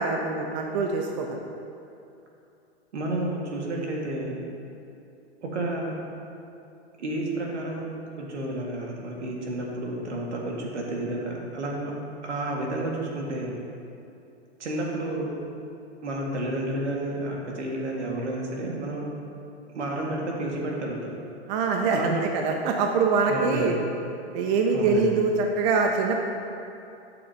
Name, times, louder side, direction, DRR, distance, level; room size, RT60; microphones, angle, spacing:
voice 1, 0.0-1.4 21.5-23.8 24.3-26.2, right 4 dB, 40° right, 2 dB, 0.8 m, -24 dB
voice 2, 2.9-4.4 5.4-6.0 7.0-7.9 8.2-12.0 12.2-13.6 14.6-15.3 16.0-19.1 19.7-21.1 21.9-22.2 23.3-23.7 24.7-25.0, right 1 dB, 85° right, -2 dB, 2.0 m, -31 dB
12.0 x 6.8 x 2.9 m, 2.7 s
hypercardioid pair, 130°, 34 cm